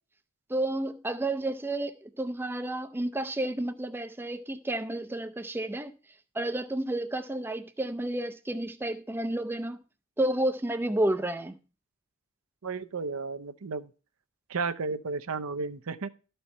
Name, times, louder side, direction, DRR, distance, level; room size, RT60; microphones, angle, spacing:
voice 1, 0.5-5.9 6.3-9.8 10.2-11.6, right 1 dB, 10° right, 0.4 m, -31 dB
voice 2, 12.6-13.9 14.5-16.1, right 4 dB, 80° right, 0.6 m, -33 dB
12.5 x 4.5 x 5.3 m
head